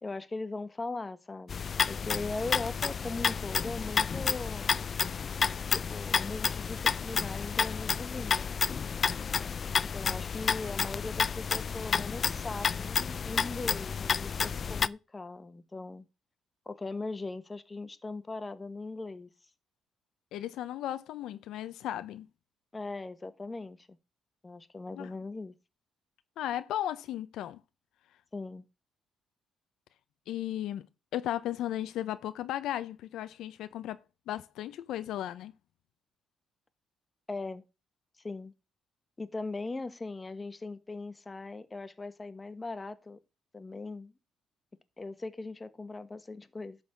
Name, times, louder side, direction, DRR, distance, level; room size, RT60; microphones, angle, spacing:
voice 1, 0.0-4.8 5.7-8.7 9.8-16.1 16.6-19.3 22.7-23.9 24.4-25.5 28.3-28.6 37.3-37.6 38.2-38.5 39.2-43.2 43.5-44.1 45.0-46.8, left 3 dB, 25° left, 1.3 m, -39 dB
sound 1, 1.5-14.9, left 6 dB, 45° left, 0.5 m, -30 dB
voice 2, 20.3-22.3 25.0-25.1 26.4-27.6 30.3-30.9 31.1-35.5, left 12 dB, 85° left, 0.7 m, -35 dB
11.5 x 4.1 x 7.3 m
cardioid pair, 90°, 0 cm